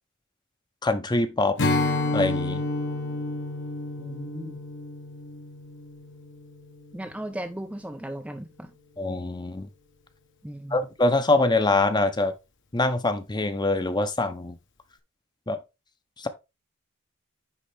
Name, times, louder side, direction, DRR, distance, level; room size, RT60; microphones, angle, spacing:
voice 1, 0.8-1.6 2.1-2.6 9.0-9.7 10.7-12.3 12.7-14.6 15.5-15.6 16.2-16.3, left 2 dB, 20° left, 0.7 m, -24 dB
Strum, 1.6-7.0, left 2 dB, 60° left, 1.2 m, -30 dB
voice 2, 4.0-4.6 6.9-8.7 10.4-10.9, right 1 dB, 5° right, 0.4 m, -36 dB
9.9 x 3.7 x 3.4 m
head